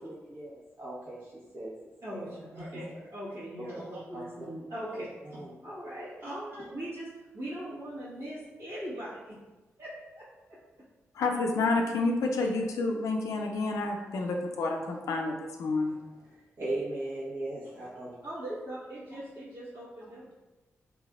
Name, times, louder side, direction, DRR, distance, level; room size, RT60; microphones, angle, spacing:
voice 1, 0.3-1.7 2.1-2.3 2.6-2.8 3.7-4.2 4.9-5.0 5.3-5.5 6.2-6.3 16.6-18.1, right 2 dB, 60° right, -11 dB, 1.1 m, -38 dB
voice 2, 2.0-5.0 5.6-7.1 7.3-9.3 9.8-10.6 18.2-20.3, right 1 dB, 75° right, -14 dB, 1.5 m, -40 dB
voice 3, 11.1-16.0, left 3 dB, 80° left, 2 dB, 0.4 m, -29 dB
3.5 x 3.2 x 2.4 m, 1.1 s
supercardioid pair, 45°, 6 cm